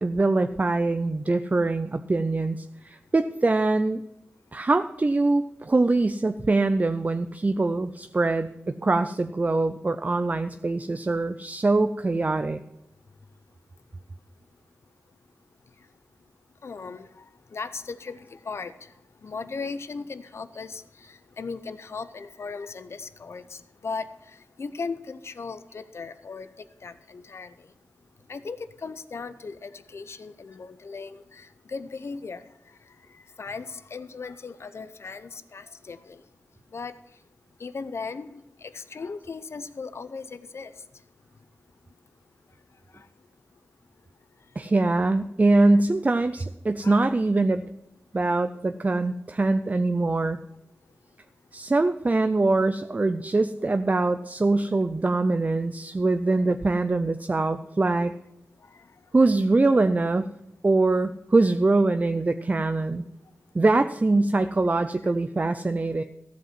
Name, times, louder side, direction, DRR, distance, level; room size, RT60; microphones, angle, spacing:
voice 1, 0.0-4.0 4.5-12.6 44.6-47.6 48.1-50.4 51.5-58.1 59.1-60.3 60.6-63.0 63.5-66.0, right 2 dB, 35° right, 10 dB, 0.5 m, -23 dB
voice 2, 16.6-17.2 17.5-18.7 19.2-20.8 21.1-24.1 24.6-26.5 26.8-27.5 28.3-32.4 33.4-36.2 36.7-36.9 37.6-40.7 46.8-47.1, left 4 dB, 65° left, 12 dB, 0.7 m, -37 dB
14.5 x 5.2 x 7.6 m, 0.84 s
cardioid pair, 55°, 5 cm